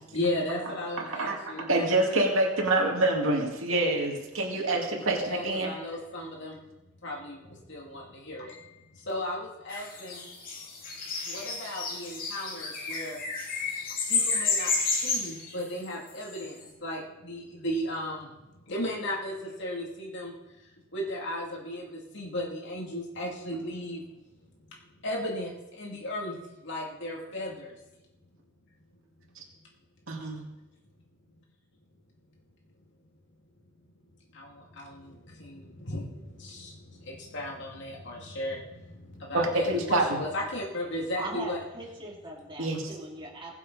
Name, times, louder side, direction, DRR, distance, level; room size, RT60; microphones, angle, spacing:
voice 1, 0.1-1.8 5.3-6.6 7.0-10.3 11.1-13.2 14.0-14.8 15.0-18.3 18.7-20.3 20.9-24.0 24.6-24.7 25.0-27.8 34.3-41.6, left 1 dB, 60° left, -2 dB, 2.8 m, -35 dB
voice 2, 0.6-5.7 29.4-29.5 30.1-30.5 39.3-40.2 42.6-42.8, right 2 dB, 75° right, 0 dB, 2.2 m, -27 dB
sound 1, 9.7-16.5, left 4 dB, 45° left, 2.8 m, -31 dB
voice 3, 41.1-43.6, right 1 dB, 25° right, -2 dB, 2.8 m, -40 dB
21.0 x 7.4 x 4.1 m, 1.0 s
head